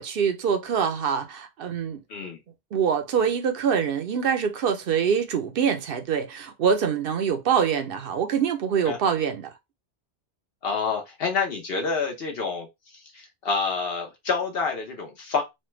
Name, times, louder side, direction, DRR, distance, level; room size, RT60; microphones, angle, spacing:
voice 1, 0.0-2.0 2.7-9.5, right 7 dB, 65° right, 0.8 m, -24 dB
voice 2, 10.6-12.7 13.1-15.4, left 4 dB, 65° left, 0.9 m, -27 dB
3.2 x 2.2 x 3.0 m
omnidirectional pair, 1.1 m